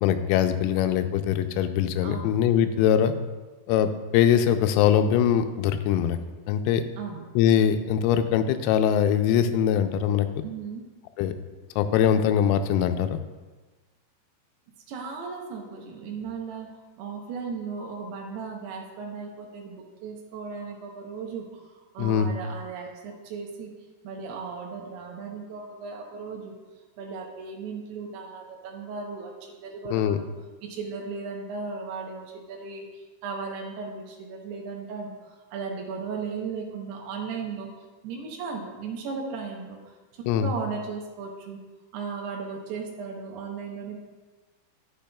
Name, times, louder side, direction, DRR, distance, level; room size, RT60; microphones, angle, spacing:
voice 1, 0.0-3.1 3.7-6.2 6.5-6.8 7.4-10.3 11.2-11.3 11.8-13.2 22.0-22.3 29.9-30.2 40.3-40.5, left 9 dB, 90° left, 9 dB, 3.3 m, -22 dB
voice 2, 2.0-2.4 7.0-7.3 10.4-10.8 14.9-16.7 17.0-23.7 24.0-26.5 27.0-30.3 30.6-41.6 41.9-44.0, right 5 dB, 85° right, 0 dB, 2.3 m, -36 dB
10.0 x 9.1 x 2.3 m, 1.3 s
omnidirectional pair, 5.9 m